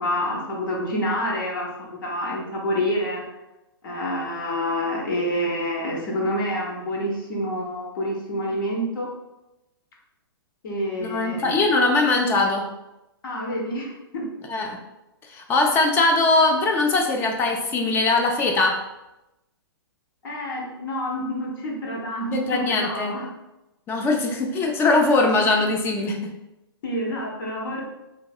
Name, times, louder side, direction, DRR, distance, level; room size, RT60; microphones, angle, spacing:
voice 1, 0.0-3.2 3.8-9.1 10.6-11.7 13.2-14.3 20.2-23.3 25.4-25.5 26.8-27.8, equal, 60° left, -2 dB, 0.8 m, -28 dB
voice 2, 11.0-12.7 14.5-14.8 15.3-18.8 22.3-23.2 23.9-26.3, left 3 dB, 15° left, 2 dB, 0.3 m, -21 dB
3.1 x 2.6 x 2.3 m, 0.96 s
hypercardioid pair, 130°, 13 cm